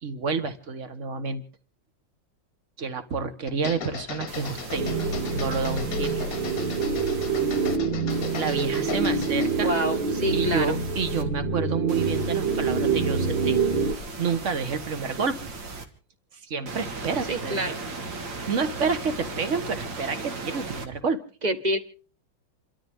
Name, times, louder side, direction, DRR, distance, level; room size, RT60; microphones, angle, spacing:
voice 1, 0.0-1.4 2.8-4.9 5.3-6.4 8.3-9.7 10.3-13.6 14.2-15.4 16.4-17.7 18.5-21.2, right 5 dB, 40° right, 10 dB, 1.6 m, -29 dB
sound 1, 3.5-9.6, left 7 dB, 50° left, 1.4 m, -38 dB
sound 2, 4.3-7.8 8.1-11.2 11.9-15.8 16.7-20.9, right 3 dB, 65° right, 2.6 m, -38 dB
sound 3, 4.7-13.9, right 4 dB, 80° right, 2.5 m, -26 dB
voice 2, 9.6-10.8 17.3-17.8 21.4-21.8, equal, 25° right, 9 dB, 1.3 m, -27 dB
28.5 x 13.0 x 3.7 m, 0.40 s
omnidirectional pair, 2.2 m